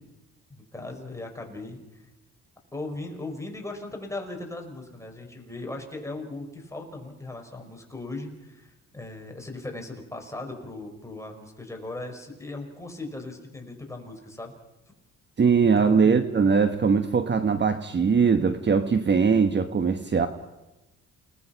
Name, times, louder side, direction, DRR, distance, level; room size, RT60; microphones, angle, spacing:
voice 1, 0.7-1.8 2.7-14.5 15.8-16.0, left 2 dB, 10° left, 2 dB, 5.5 m, -38 dB
voice 2, 15.4-20.3, right 5 dB, 35° right, 9 dB, 1.3 m, -21 dB
29.5 x 19.0 x 5.9 m, 1.0 s
cardioid pair, 90°, 30 cm